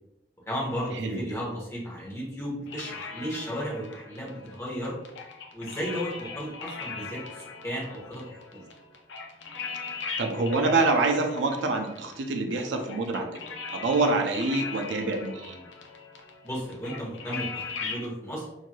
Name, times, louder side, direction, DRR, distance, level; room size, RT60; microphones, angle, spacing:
voice 1, 0.5-5.0 5.5-8.6 16.4-18.5, equal, 15° left, -4 dB, 1.0 m, -34 dB
sound 1, 2.7-18.1, left 5 dB, 80° left, 0.5 m, -40 dB
voice 2, 10.2-13.3 13.7-15.6, right 3 dB, 80° right, 4 dB, 0.5 m, -26 dB
3.1 x 2.7 x 2.3 m, 0.89 s
head